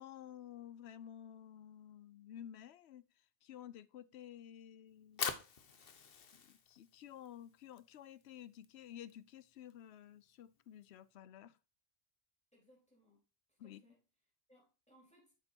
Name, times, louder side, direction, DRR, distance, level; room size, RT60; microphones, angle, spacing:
voice 1, 0.0-3.0 3.4-5.4 6.3-11.6 13.6-13.9, left 10 dB, 90° left, 0.9 m, -53 dB
Fire, 4.9-11.1, left 6 dB, 65° left, 1.1 m, -47 dB
voice 2, 12.5-14.0 14.5-15.3, equal, 5° left, 3.8 m, -69 dB
8.1 x 6.6 x 2.8 m
omnidirectional pair, 1.1 m